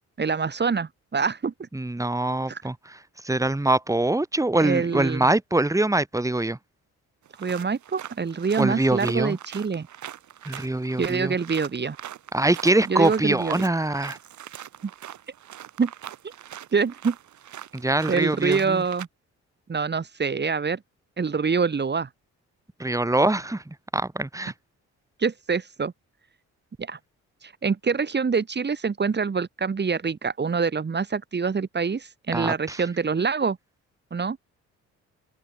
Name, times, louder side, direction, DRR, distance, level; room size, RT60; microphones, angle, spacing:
voice 1, 0.2-1.5 2.5-2.6 4.6-5.3 7.4-9.9 11.0-12.0 12.9-13.6 15.8-15.9 16.7-17.2 18.1-19.1 19.7-20.8 21.2-22.1 25.2-25.9 26.8-27.0 27.4-33.6 34.1-34.4, right 5 dB, 35° right, 4.2 m, -25 dB
voice 2, 1.7-3.0 3.2-6.6 8.6-9.4 10.5-11.3 12.3-14.2 17.7-18.8 22.8-24.5 32.3-32.8, right 2 dB, 10° right, 4.6 m, -24 dB
sound 1, 7.3-19.1, right 11 dB, 70° right, 6.7 m, -42 dB
open air
cardioid pair, 90°, 30 cm